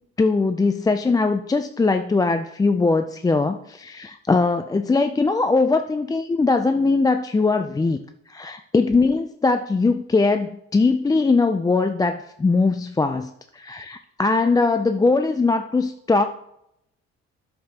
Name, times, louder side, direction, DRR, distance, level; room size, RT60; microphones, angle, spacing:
voice 1, 0.2-8.0 8.3-16.2, left 3 dB, 15° left, 8 dB, 0.3 m, -21 dB
9.3 x 6.7 x 2.8 m, 0.76 s
cardioid pair, 90°, 30 cm